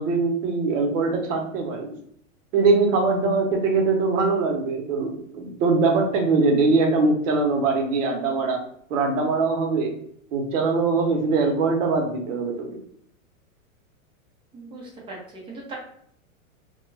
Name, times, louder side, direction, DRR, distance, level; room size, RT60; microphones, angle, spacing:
voice 1, 0.0-1.9 2.5-8.6 8.9-9.9 10.3-12.7, right 3 dB, 60° right, 2 dB, 0.8 m, -22 dB
voice 2, 14.5-15.8, right 2 dB, 15° right, -3 dB, 0.5 m, -39 dB
2.2 x 2.2 x 3.1 m, 0.67 s
hypercardioid pair, 130°, 42 cm